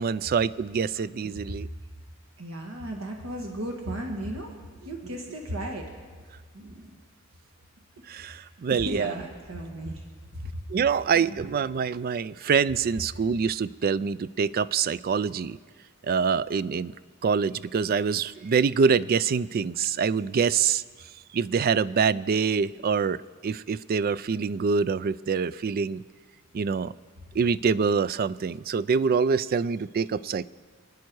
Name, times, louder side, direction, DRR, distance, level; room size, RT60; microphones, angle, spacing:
voice 1, 0.0-1.7 8.1-9.1 10.7-15.6 16.0-16.9 17.2-20.8 21.3-26.0 26.5-26.9 27.3-30.4, right 5 dB, 45° right, 17 dB, 0.4 m, -25 dB
voice 2, 1.4-1.7 2.4-4.5 4.8-5.9 6.5-6.9 8.2-10.0 10.3-10.7 11.1-11.4, right 1 dB, 75° right, 1 dB, 1.6 m, -35 dB
28.5 x 9.5 x 4.7 m, 1.5 s
head